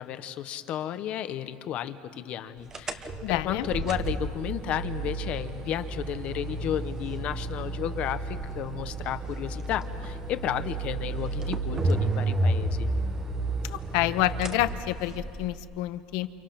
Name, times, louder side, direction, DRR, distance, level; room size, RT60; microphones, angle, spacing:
voice 1, 0.0-12.9, left 10 dB, 40° left, 11 dB, 1.0 m, -33 dB
sound 1, 2.7-15.6, right 2 dB, 15° right, 1.0 m, -31 dB
voice 2, 3.2-3.7 13.6-16.3, left 16 dB, 75° left, 11 dB, 1.0 m, -28 dB
29.0 x 28.5 x 5.9 m, 2.4 s
cardioid pair, 180°, 3 cm